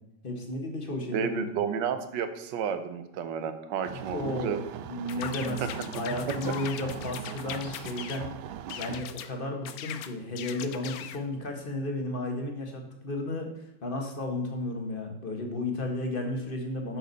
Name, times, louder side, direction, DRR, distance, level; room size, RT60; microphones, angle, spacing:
voice 1, 0.2-1.5 3.9-4.6 4.9-8.3 8.8-17.0, left 2 dB, 30° left, 2 dB, 1.5 m, -33 dB
voice 2, 1.1-4.6 5.6-5.7, right 7 dB, 70° right, 9 dB, 1.4 m, -31 dB
sound 1, 3.8-9.1, right 10 dB, 85° right, 1.3 m, -40 dB
sound 2, 5.1-8.2 8.7-9.3 9.6-11.2, left 10 dB, 70° left, 0.9 m, -40 dB
10.5 x 6.3 x 4.1 m, 0.86 s
omnidirectional pair, 2.1 m